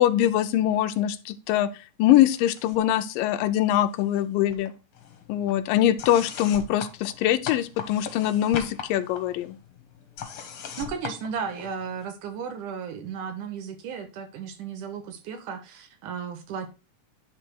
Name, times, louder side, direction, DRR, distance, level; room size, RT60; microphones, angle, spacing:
voice 1, 0.0-1.7 2.0-4.7 5.3-9.6, left 12 dB, 85° left, 2.3 m, -23 dB
sound 1, 2.1-2.9 3.2-4.2 4.5-12.0, left 7 dB, 60° left, 1.5 m, -40 dB
voice 2, 10.8-16.7, right 6 dB, 70° right, 2.4 m, -34 dB
10.0 x 3.5 x 4.5 m
omnidirectional pair, 3.9 m